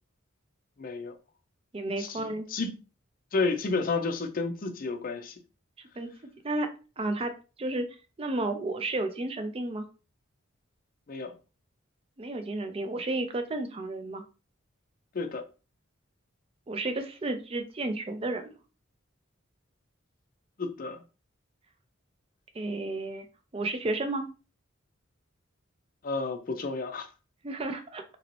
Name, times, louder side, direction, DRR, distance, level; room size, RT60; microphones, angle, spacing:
voice 1, 0.8-1.1 2.0-2.7 3.3-5.3 11.1-11.3 15.1-15.4 20.6-21.0 26.0-27.1, left 3 dB, 45° left, 0.5 m, -31 dB
voice 2, 1.7-2.5 6.0-6.1 6.4-6.7 7.0-7.3 7.6-7.9 8.2-9.9 12.2-14.2 16.7-18.6 22.5-23.3 23.5-24.3 27.4-28.0, right 2 dB, 30° right, 0.4 m, -32 dB
3.0 x 2.7 x 3.0 m
head